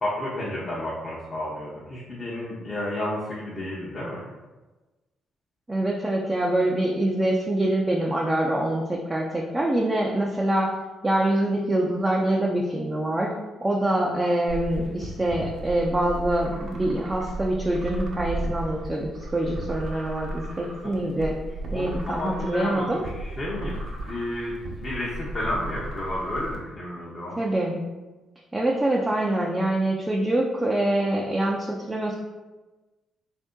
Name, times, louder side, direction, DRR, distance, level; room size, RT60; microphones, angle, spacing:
voice 1, 0.0-4.2 20.8-21.3 21.7-23.8 24.0-27.4, left 1 dB, 35° left, -7 dB, 0.8 m, -31 dB
voice 2, 5.7-10.8 11.0-13.3 13.6-21.4 21.7-23.0 27.4-27.8 28.5-32.1, right 1 dB, 15° right, -2 dB, 0.5 m, -25 dB
sound 1, 14.5-26.6, right 1 dB, 55° right, 0.7 m, -35 dB
3.5 x 2.7 x 3.6 m, 1.2 s
cardioid pair, 90°, 0 cm